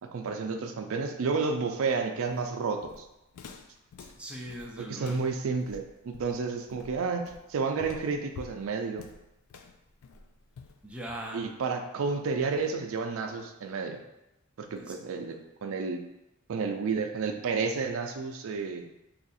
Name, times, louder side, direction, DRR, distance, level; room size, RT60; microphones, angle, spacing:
voice 1, 0.0-3.1 4.8-9.1 11.3-14.0 14.6-16.0 16.5-18.9, right 4 dB, 70° right, 5 dB, 0.4 m, -31 dB
Walk footsteps, 2.3-11.5, left 5 dB, 80° left, 0.3 m, -49 dB
voice 2, 4.1-5.3 10.8-11.5 14.7-15.0, equal, 5° right, -2 dB, 0.4 m, -40 dB
2.7 x 2.5 x 4.0 m, 0.91 s
head